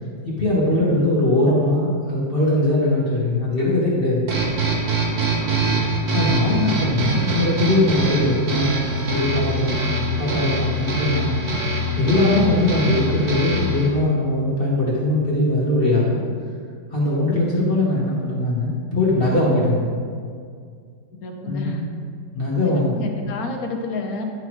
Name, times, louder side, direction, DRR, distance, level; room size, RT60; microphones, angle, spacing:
voice 1, 0.2-4.3 6.1-11.3 11.9-16.2 16.9-19.9 21.4-21.7 22.3-22.9, left 1 dB, 35° left, -6 dB, 1.2 m, -21 dB
sound 1, 4.3-13.9, right 2 dB, 55° right, 1.6 m, -23 dB
voice 2, 5.4-5.8 21.2-21.9 22.6-24.2, left 2 dB, 60° left, 2 dB, 1.2 m, -30 dB
11.0 x 5.7 x 3.1 m, 2.1 s
omnidirectional pair, 2.0 m